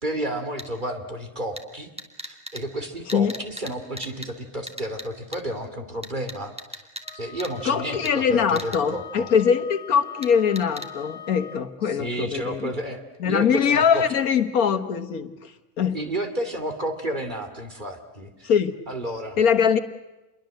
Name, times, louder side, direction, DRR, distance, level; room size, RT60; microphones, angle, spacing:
voice 1, 0.0-1.9 2.2-6.8 7.1-9.3 11.9-14.0 15.9-18.5 18.9-19.4, right 1 dB, 35° right, 6 dB, 3.0 m, -31 dB
sound 1, 0.6-0.7 1.6-1.7 2.0-2.6 3.1-3.7 4.0-4.3 4.7-5.0 5.3-5.4 6.0-7.1 7.4-7.5 8.0-8.1 8.6-8.8 10.2-10.3 10.6-10.9, equal, 5° right, 2.3 m, -36 dB
Wind instrument woodwind instrument, 7.0-11.8, left 7 dB, 55° left, 2.1 m, -41 dB
voice 2, 7.7-12.7 13.2-15.5 15.8-16.0 18.4-18.8 19.4-19.8, left 7 dB, 90° left, 9 dB, 1.8 m, -22 dB
28.0 x 22.0 x 7.7 m, 1.1 s
omnidirectional pair, 1.5 m